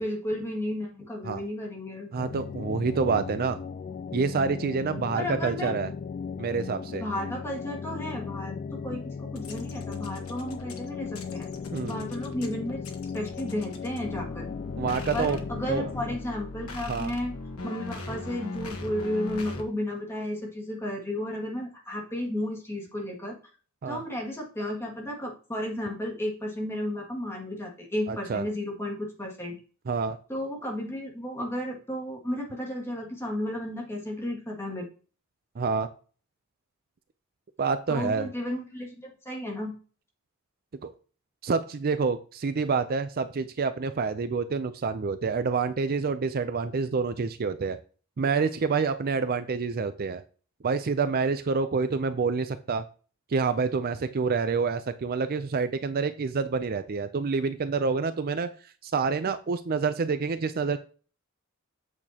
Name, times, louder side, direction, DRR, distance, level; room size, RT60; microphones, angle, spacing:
voice 1, 0.0-2.1 5.1-5.7 7.0-11.5 11.9-12.8 13.1-14.5 15.1-17.4 17.6-23.4 23.9-29.6 30.3-34.9 37.9-39.7, left 1 dB, 10° left, -2 dB, 2.1 m, -33 dB
voice 2, 2.1-3.6 4.1-5.9 6.4-7.0 11.7-12.0 14.8-15.4 15.7-15.9 16.9-17.1 23.8-24.0 28.1-28.5 29.9-30.2 35.6-35.9 37.6-38.3 40.8-40.9 41.4-47.8 48.2-50.2 50.6-52.8 53.3-60.8, right 4 dB, 45° right, 11 dB, 0.4 m, -27 dB
sound 1, 2.2-16.2, left 5 dB, 40° left, 0.3 m, -37 dB
sound 2, 9.3-19.6, left 2 dB, 90° left, 1.3 m, -40 dB
8.4 x 6.8 x 2.9 m, 0.38 s
head